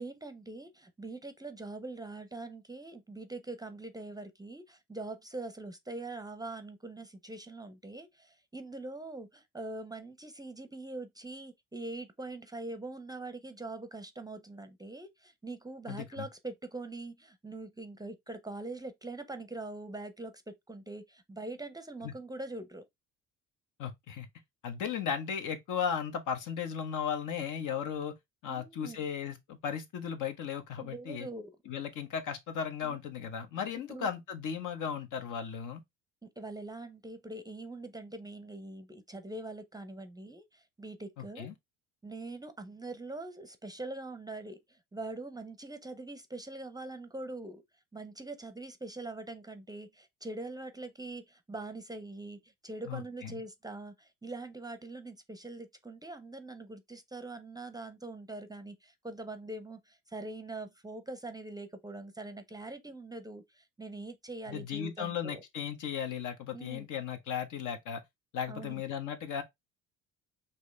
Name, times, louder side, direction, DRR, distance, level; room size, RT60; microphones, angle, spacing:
voice 1, 0.0-22.8 28.5-29.0 30.8-31.5 32.8-33.0 33.9-34.1 36.2-41.5 42.0-47.6 47.9-65.4 66.5-66.9 68.5-68.8, right 2 dB, 10° right, 0.6 m, -43 dB
voice 2, 15.9-16.3 22.0-22.1 23.8-24.3 24.6-28.1 28.4-31.3 31.7-35.8 41.2-41.5 52.9-53.3 64.5-68.0 68.3-69.4, left 7 dB, 65° left, 1.1 m, -36 dB
4.7 x 2.8 x 3.2 m
supercardioid pair, 75°, 34 cm